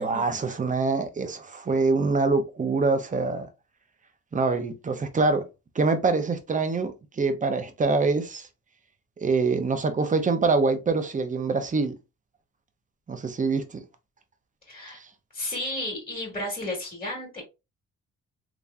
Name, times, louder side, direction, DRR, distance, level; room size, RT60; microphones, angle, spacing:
voice 1, 0.0-3.5 4.3-5.5 5.7-8.5 9.2-12.0 13.1-13.8 14.9-15.1, right 3 dB, 25° right, 0.8 m, -25 dB
voice 2, 14.7-15.0 15.3-17.4, left 1 dB, 20° left, 2.2 m, -33 dB
3.6 x 3.0 x 2.6 m
cardioid pair, 90°, 30 cm